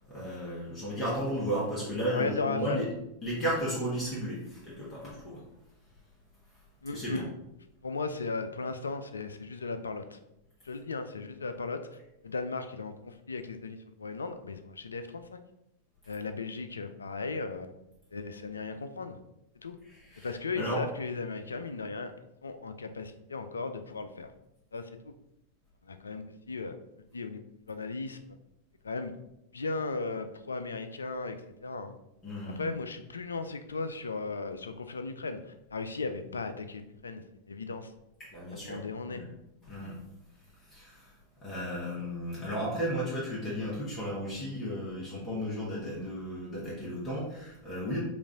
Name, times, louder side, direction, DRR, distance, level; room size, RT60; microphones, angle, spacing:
voice 1, 0.1-2.9 3.2-5.4 6.9-7.2 19.8-20.9 32.2-32.7 38.2-39.3 39.7-39.9 40.7-41.1 41.4-48.0, equal, 25° left, -7 dB, 1.5 m, -34 dB
voice 2, 2.1-2.9 6.8-7.3 7.8-10.2 10.6-11.9 12.2-15.4 16.1-17.7 18.1-19.2 19.6-19.8 20.2-22.1 22.4-24.3 24.7-25.1 25.8-26.8 27.1-27.4 27.7-28.4 28.8-29.1 29.5-31.9 32.6-37.9 38.5-39.2, left 3 dB, 75° left, 9 dB, 0.4 m, -36 dB
5.0 x 2.5 x 3.6 m, 0.86 s
figure-of-eight pair, 90°, 0 cm